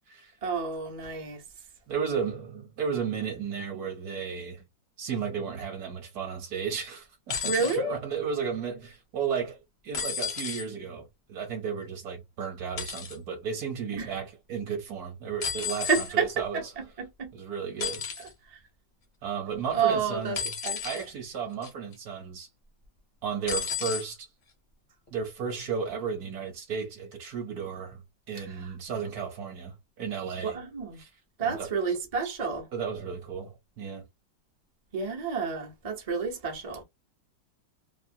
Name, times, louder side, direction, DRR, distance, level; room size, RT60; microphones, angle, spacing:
voice 1, 0.4-1.4 7.4-8.0 14.0-14.1 15.8-17.3 18.5-18.6 19.7-20.4 20.6-21.0 28.6-28.7 30.4-31.0 31.4-32.7 34.9-36.8, right 5 dB, 40° right, 0.5 m, -30 dB
voice 2, 1.9-4.6 5.0-9.6 9.8-16.6 17.3-18.0 19.2-20.5 20.8-22.5 23.2-24.3 25.1-28.0 28.3-30.6 31.0-31.1 31.4-31.9 32.7-34.0, right 6 dB, 60° right, 1.2 m, -34 dB
sound 1, 7.3-7.8 9.9-10.7 12.8-13.2 15.4-16.1 17.8-18.3 20.3-21.1 21.6-21.9 23.5-24.1 25.1-25.2, left 7 dB, 55° left, 0.8 m, -33 dB
3.1 x 2.1 x 2.7 m
omnidirectional pair, 2.0 m